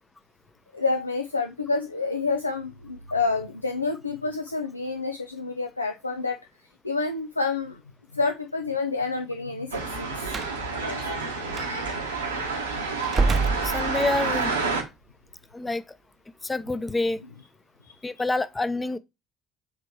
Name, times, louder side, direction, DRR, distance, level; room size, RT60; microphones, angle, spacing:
voice 1, 0.7-6.4 6.8-7.8 8.1-10.3 10.7-11.0 11.7-11.9 17.9-18.0, left 4 dB, 90° left, 0.4 m, -28 dB
sound 1, 9.7-14.8, right 4 dB, 85° right, 1.2 m, -29 dB
Slam, 10.2-10.6 11.5-11.7 13.0-14.3, right 4 dB, 35° right, 0.7 m, -26 dB
voice 2, 13.6-14.5 15.5-15.8 16.4-17.2 18.0-19.0, left 2 dB, 20° left, 0.7 m, -27 dB
7.4 x 3.1 x 4.4 m
figure-of-eight pair, 50°, 0 cm